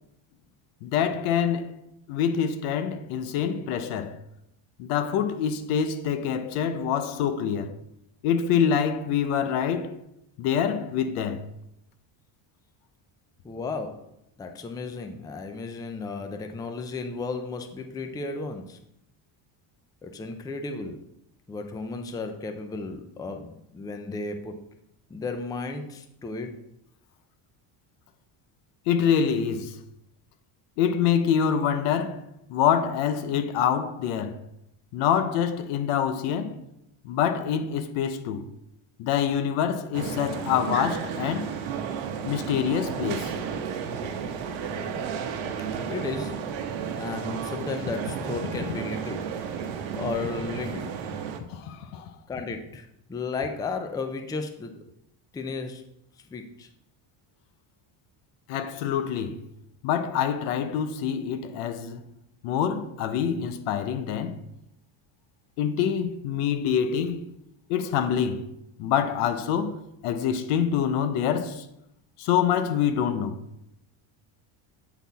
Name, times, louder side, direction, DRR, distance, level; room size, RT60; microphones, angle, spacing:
voice 1, 0.8-1.7 2.1-4.2 4.8-7.7 8.2-9.9 10.4-11.5 28.9-29.8 30.8-32.2 32.5-34.4 34.9-36.5 37.0-38.5 39.0-41.5 42.2-43.3 51.5-52.1 58.5-59.4 59.8-62.0 62.4-64.4 65.6-67.2 67.7-68.5 68.8-69.8 70.0-71.7 72.2-73.4, left 8 dB, 90° left, 0.9 m, -26 dB
voice 2, 13.4-14.0 14.4-18.8 20.0-21.0 21.5-24.5 25.1-26.5 45.9-46.3 46.9-49.3 50.0-51.0 52.3-54.7 55.3-55.8 56.3-56.7, left 4 dB, 10° left, 0.4 m, -34 dB
sound 1, 39.9-51.4, right 7 dB, 70° right, 0.9 m, -33 dB
8.2 x 4.1 x 4.1 m
cardioid pair, 135°, 49 cm